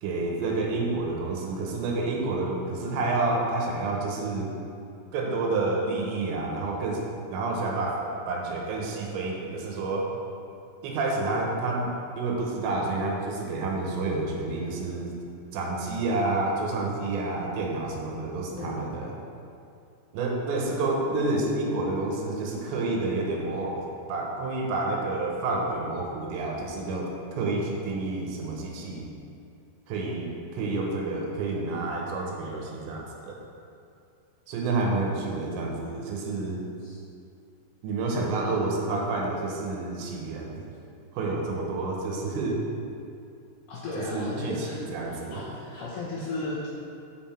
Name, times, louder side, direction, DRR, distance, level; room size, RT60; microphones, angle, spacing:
voice 1, 0.0-4.5 5.1-7.0 7.3-10.1 10.8-15.1 15.5-19.1 20.1-23.8 24.1-29.1 29.9-33.4 34.5-36.6 37.8-40.6 41.1-42.6 44.0-45.4, right 3 dB, 85° right, -1 dB, 3.3 m, -29 dB
voice 2, 43.7-44.8 45.1-46.6, left 2 dB, 80° left, -5 dB, 1.8 m, -35 dB
9.7 x 5.7 x 4.4 m, 2.5 s
omnidirectional pair, 5.0 m